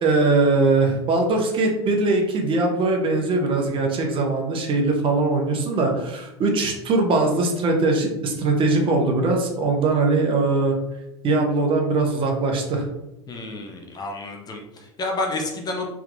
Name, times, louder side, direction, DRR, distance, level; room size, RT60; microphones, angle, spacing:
voice 1, 0.0-10.7 11.2-12.9, right 3 dB, 35° right, 2 dB, 0.8 m, -21 dB
voice 2, 13.3-15.9, left 2 dB, 25° left, 2 dB, 0.6 m, -30 dB
3.5 x 2.8 x 2.4 m, 0.96 s
hypercardioid pair, 90°, 15 cm